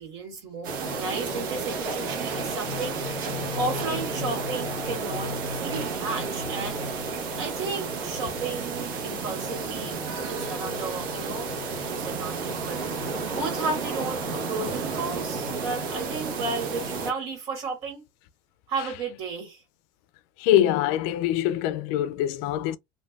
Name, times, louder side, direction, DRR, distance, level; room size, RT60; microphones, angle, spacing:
voice 1, 0.0-3.0 3.5-6.8 7.4-10.0 10.3-11.5 11.8-12.8 13.3-18.0 18.7-19.6, right 3 dB, 55° right, 1.9 m, -33 dB
sound 1, 0.6-17.1, right 3 dB, 85° right, 1.1 m, -31 dB
voice 2, 20.4-22.8, left 12 dB, 65° left, 0.4 m, -23 dB
3.2 x 2.6 x 2.3 m
cardioid pair, 155°, 11 cm